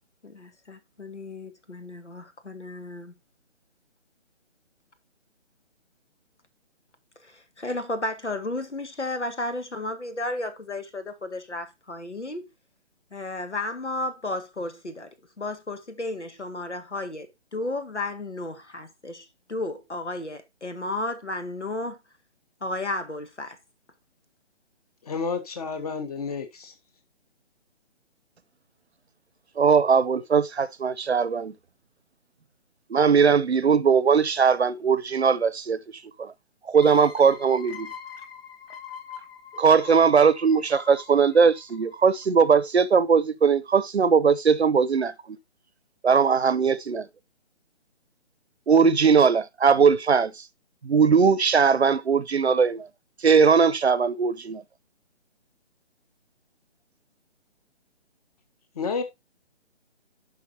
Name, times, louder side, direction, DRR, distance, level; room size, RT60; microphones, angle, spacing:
voice 1, 0.2-3.1 7.2-12.5 13.1-15.1 15.4-22.0 22.6-23.6, left 2 dB, 85° left, 1.9 m, -33 dB
voice 2, 25.0-26.7 58.7-59.0, left 5 dB, 35° left, 1.6 m, -30 dB
voice 3, 29.6-31.5 32.9-35.8 36.2-36.3 36.7-37.9 39.6-45.1 46.0-47.1 48.7-50.3 50.8-52.9 53.2-54.6, right 6 dB, 70° right, 0.8 m, -20 dB
sound 1, 36.7-42.2, left 7 dB, 60° left, 2.0 m, -43 dB
11.0 x 5.5 x 2.7 m
figure-of-eight pair, 145°, 34 cm